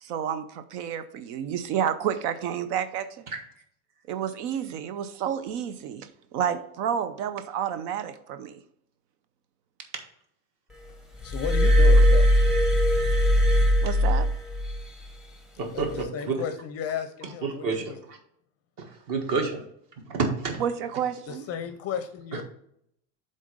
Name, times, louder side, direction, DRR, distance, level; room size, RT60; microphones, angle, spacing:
voice 1, 0.0-3.2 4.1-8.6 13.8-14.3 20.6-21.5, right 8 dB, 75° right, 12 dB, 0.7 m, -30 dB
voice 2, 11.2-12.3 15.5-18.0 21.3-22.4, left 7 dB, 35° left, 9 dB, 0.5 m, -34 dB
Glass, 11.2-14.8 15.8-16.0, equal, ahead, 0.7 m, -20 dB
voice 3, 15.6-16.4 17.4-17.8 18.8-19.6 20.1-20.6, right 4 dB, 45° right, 3 dB, 1.7 m, -28 dB
7.5 x 3.8 x 5.2 m, 0.70 s
supercardioid pair, 145°, 47 cm